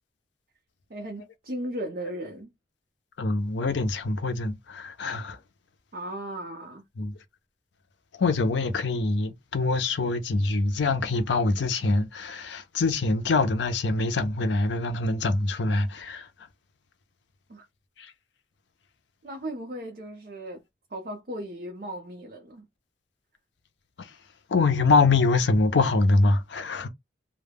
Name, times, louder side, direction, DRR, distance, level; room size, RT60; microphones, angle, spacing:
voice 1, 0.9-2.5 5.9-6.8 17.5-17.7 19.2-20.6 20.9-22.7, right 1 dB, 50° right, 0.5 m, -36 dB
voice 2, 3.2-5.4 7.0-7.2 8.2-16.3 18.0-18.1 24.0-24.1 24.5-26.9, left 3 dB, 85° left, 0.5 m, -24 dB
2.2 x 2.0 x 3.3 m
head